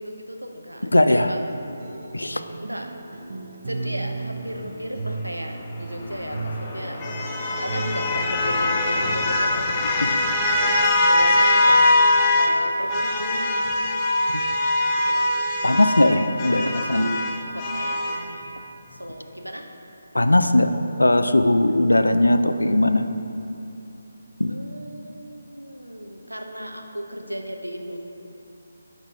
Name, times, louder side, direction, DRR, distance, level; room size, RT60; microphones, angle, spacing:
voice 1, 0.0-1.4 2.6-2.9 3.7-7.0 7.6-11.8 12.3-13.9 14.9-15.4 16.5-17.3 17.5-18.4 18.9-19.7 24.5-28.0, equal, 85° right, 3 dB, 0.7 m, -35 dB
voice 2, 0.9-1.3 2.1-2.4 10.0-10.1 15.6-17.1 20.1-20.7 21.0-23.1 24.4-24.5, left 1 dB, 75° left, 9 dB, 0.4 m, -19 dB
sound 1, 1.4-9.6, right 3 dB, 45° right, 0.6 m, -35 dB
sound 2, 5.9-12.6 12.9-18.3, left 2 dB, 20° left, 0.5 m, -22 dB
10.0 x 4.1 x 3.5 m, 2.9 s
figure-of-eight pair, 150°, 0 cm